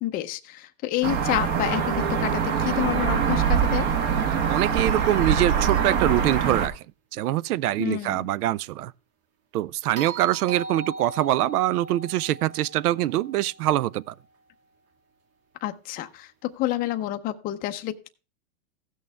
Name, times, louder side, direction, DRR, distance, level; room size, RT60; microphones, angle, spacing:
voice 1, 0.0-3.9 7.8-8.3 15.6-18.1, left 14 dB, 20° left, 0.5 m, -29 dB
sound 1, 1.0-6.7, right 7 dB, 45° right, 1.4 m, -23 dB
voice 2, 4.5-6.8 7.1-8.9 9.5-14.1, right 14 dB, 80° right, 0.5 m, -24 dB
sound 2, 10.0-14.2 16.5-16.6, right 3 dB, 65° right, 2.2 m, -40 dB
16.0 x 6.4 x 3.4 m
hypercardioid pair, 130°, 44 cm